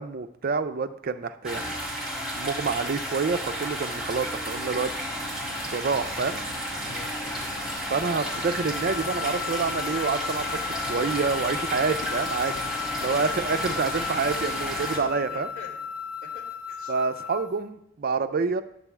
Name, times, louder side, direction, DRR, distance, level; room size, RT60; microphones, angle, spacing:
voice 1, 0.0-1.7 2.3-5.0 5.7-6.4 7.9-10.6 10.9-12.6 13.0-15.5 16.9-18.6, right 4 dB, 45° right, 10 dB, 0.5 m, -27 dB
sound 1, 1.4-15.0, equal, ahead, 1.9 m, -32 dB
sound 2, 3.4-16.2, left 2 dB, 30° left, 0.5 m, -44 dB
voice 2, 6.8-7.5 13.0-13.6 15.3-15.8 16.2-16.9, left 3 dB, 70° left, -3 dB, 2.7 m, -46 dB
sound 3, 8.0-17.6, left 8 dB, 50° left, 1.2 m, -35 dB
10.0 x 3.4 x 7.2 m, 0.76 s
head